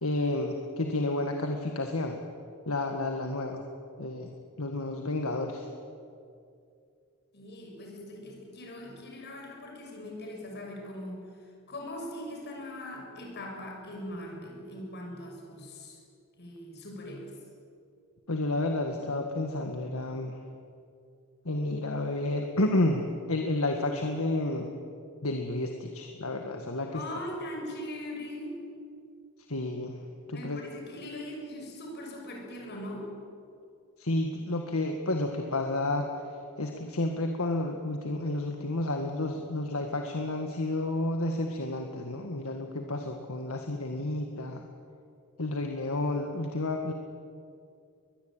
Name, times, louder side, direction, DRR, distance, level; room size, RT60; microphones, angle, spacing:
voice 1, 0.0-2.2 2.7-3.6 4.0-5.7 18.3-20.4 21.5-24.7 25.2-27.0 29.5-30.0 30.3-30.6 34.0-36.2 36.6-44.7 45.4-46.9, left 2 dB, 70° left, 4 dB, 1.8 m, -31 dB
voice 2, 7.3-16.0 16.4-17.3 26.9-28.7 30.3-33.2, left 1 dB, 50° left, 1 dB, 7.0 m, -41 dB
22.5 x 21.5 x 9.0 m, 2.5 s
head